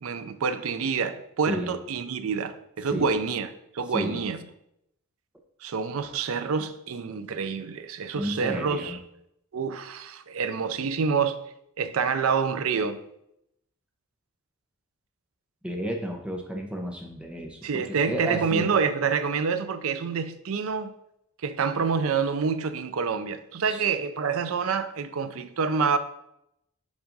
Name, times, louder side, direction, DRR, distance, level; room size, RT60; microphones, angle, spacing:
voice 1, 0.0-4.4 5.6-9.0 9.5-11.4 11.8-13.0 17.6-20.9 21.4-26.0, right 5 dB, 65° right, 0.5 m, -27 dB
voice 2, 3.9-4.2 8.1-9.0 15.6-18.7 23.7-23.8, right 1 dB, 5° right, 0.7 m, -32 dB
7.1 x 2.5 x 5.2 m
head